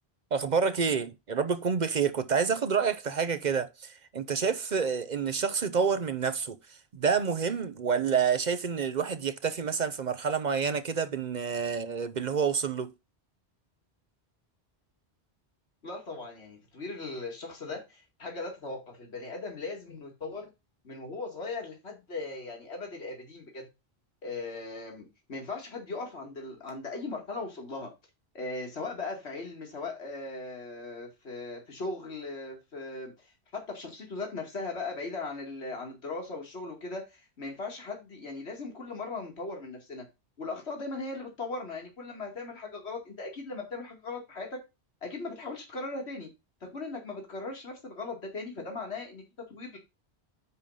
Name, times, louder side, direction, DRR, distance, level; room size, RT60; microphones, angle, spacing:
voice 1, 0.3-6.6 6.9-12.9, right 6 dB, 50° right, 0.7 m, -28 dB
voice 2, 15.8-20.5 20.8-23.7 24.2-27.9 28.3-33.1 33.5-40.0 40.4-44.6 45.0-46.3 46.6-49.2 49.5-49.8, left 3 dB, 85° left, 2.4 m, -38 dB
9.8 x 3.7 x 5.6 m
omnidirectional pair, 1.1 m